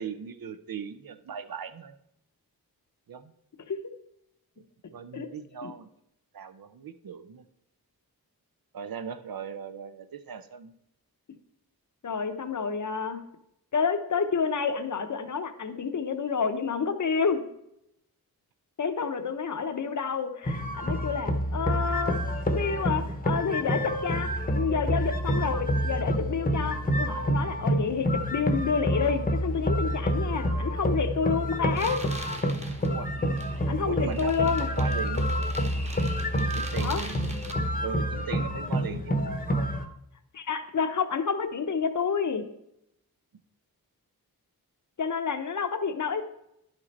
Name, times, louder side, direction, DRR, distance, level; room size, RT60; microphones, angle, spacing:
voice 1, 0.0-2.0 3.1-3.3 4.9-5.9 6.3-7.5 8.7-10.7 32.9-33.1 33.9-35.4 36.5-37.4 37.8-39.2 39.5-39.7, right 7 dB, 65° right, 12 dB, 0.7 m, -38 dB
voice 2, 12.0-13.2 13.7-17.4 18.8-22.2 22.5-32.0 33.7-34.7 36.8-37.0 40.3-42.5 45.0-46.2, left 5 dB, 50° left, 8 dB, 0.9 m, -29 dB
sound 1, 20.4-39.8, equal, 20° left, 0.9 m, -28 dB
sound 2, 31.8-37.5, right 1 dB, 20° right, 1.2 m, -43 dB
11.0 x 5.3 x 4.2 m, 0.79 s
wide cardioid pair, 100°, 37 cm